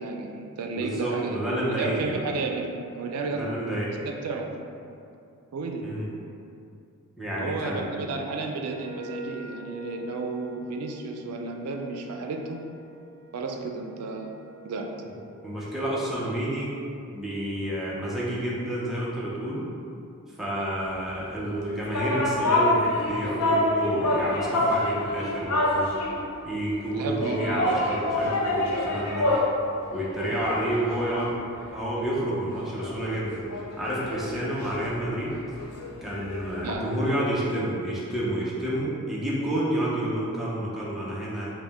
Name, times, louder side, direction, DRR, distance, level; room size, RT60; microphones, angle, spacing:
voice 1, 0.0-3.5 4.1-4.6 5.5-5.9 7.4-12.6 13.3-14.4 14.6-14.9 26.9-27.4 36.6-37.0, right 3 dB, 90° right, 3 dB, 0.4 m, -32 dB
voice 2, 0.7-2.2 3.3-4.0 5.8-6.1 7.2-7.9 15.4-16.7 17.1-19.7 20.4-26.0 26.4-29.3 29.9-31.3 31.7-33.5 33.8-35.4 36.0-41.5, right 1 dB, ahead, -8 dB, 0.5 m, -29 dB
Wind instrument woodwind instrument, 8.6-15.3, right 1 dB, 35° right, 1.1 m, -45 dB
sound 1, 21.5-26.3 27.2-29.6 29.9-31.8 32.2-32.3 32.6-36.8, left 1 dB, 85° left, 0.6 m, -27 dB
4.9 x 2.1 x 3.3 m, 2.6 s
head